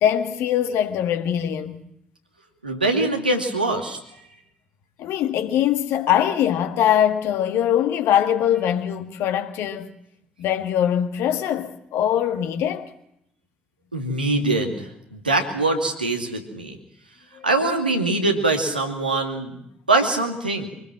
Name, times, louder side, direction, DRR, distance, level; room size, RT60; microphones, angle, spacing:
voice 1, 0.0-1.8 5.0-9.9 10.4-12.9 17.4-17.5, left 10 dB, 60° left, 2.0 m, -22 dB
voice 2, 2.6-4.0 13.9-16.8 17.4-19.6 19.9-20.7, right 2 dB, 90° right, 2.4 m, -23 dB
24.5 x 19.5 x 7.7 m
figure-of-eight pair, 45°, 5 cm